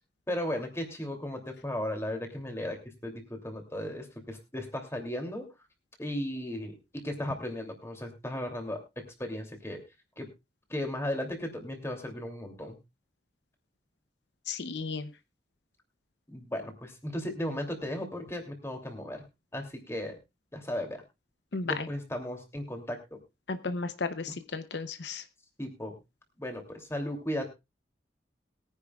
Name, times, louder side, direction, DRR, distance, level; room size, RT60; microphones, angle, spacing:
voice 1, 0.3-2.8 3.0-5.5 6.0-9.8 10.2-10.3 10.7-12.8 16.3-19.2 19.5-20.2 20.5-21.0 21.6-23.0 24.3-24.4 25.6-26.0 26.4-27.4, left 1 dB, 15° left, 4 dB, 2.8 m, -36 dB
voice 2, 14.5-15.1 21.5-21.9 23.5-25.2, left 4 dB, 75° left, 11 dB, 0.8 m, -34 dB
21.5 x 10.0 x 2.4 m, 0.23 s
head